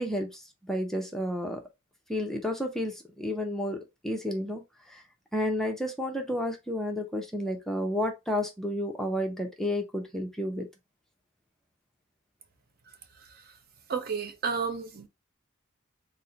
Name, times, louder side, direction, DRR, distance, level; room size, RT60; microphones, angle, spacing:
voice 1, 0.0-1.6 2.1-4.6 4.9-5.0 5.3-10.7, left 1 dB, ahead, 0.6 m, -31 dB
voice 2, 13.9-15.1, right 5 dB, 45° right, 0.6 m, -31 dB
4.2 x 2.1 x 3.7 m
head